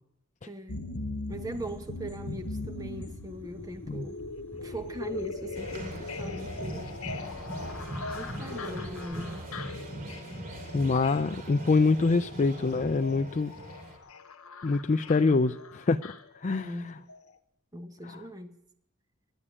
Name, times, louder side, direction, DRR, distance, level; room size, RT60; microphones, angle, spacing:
voice 1, 0.4-0.8 1.3-4.2 4.6-6.9 8.1-9.5 15.1-15.4 16.5-17.1 17.7-18.5, right 1 dB, 15° right, 1.2 m, -40 dB
sound 1, 0.7-16.8 17.1-17.2, left 3 dB, 85° left, 1.0 m, -40 dB
sound 2, 1.3-9.1, equal, 10° left, 0.9 m, -48 dB
sound 3, 5.5-14.0, right 1 dB, 40° right, 3.0 m, -41 dB
voice 2, 10.7-13.5 14.6-16.0 16.4-16.9 18.0-18.2, left 3 dB, 35° left, 0.4 m, -25 dB
11.0 x 10.5 x 9.9 m
head